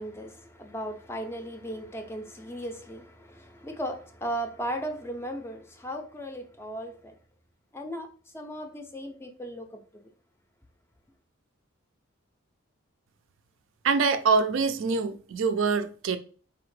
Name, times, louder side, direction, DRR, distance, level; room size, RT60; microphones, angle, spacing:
voice 1, 0.0-7.2 7.7-8.1 8.3-10.1, equal, 10° left, 0.4 m, -36 dB
voice 2, 13.8-16.2, right 4 dB, 65° right, 0.4 m, -24 dB
4.1 x 2.8 x 3.2 m
head